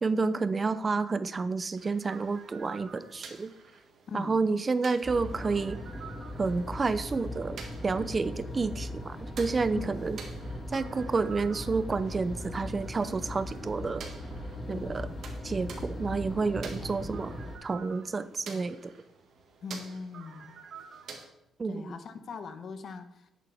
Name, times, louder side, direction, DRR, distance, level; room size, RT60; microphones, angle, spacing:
voice 1, 0.0-3.5 4.1-5.8 6.4-10.2 10.7-14.0 14.7-15.1 15.4-17.3 17.6-18.9 21.6-21.9, right 4 dB, 30° right, 14 dB, 0.5 m, -30 dB
sound 1, 1.7-21.3, right 5 dB, 60° right, 1.7 m, -49 dB
voice 2, 4.1-4.5 9.7-10.0 14.7-15.0 16.8-17.0 19.6-20.6 21.6-23.3, left 4 dB, 55° left, 9 dB, 1.0 m, -41 dB
sound 2, 5.0-17.6, left 1 dB, 25° left, 3.7 m, -39 dB
11.0 x 8.3 x 3.5 m, 0.85 s
cardioid pair, 90°, 0 cm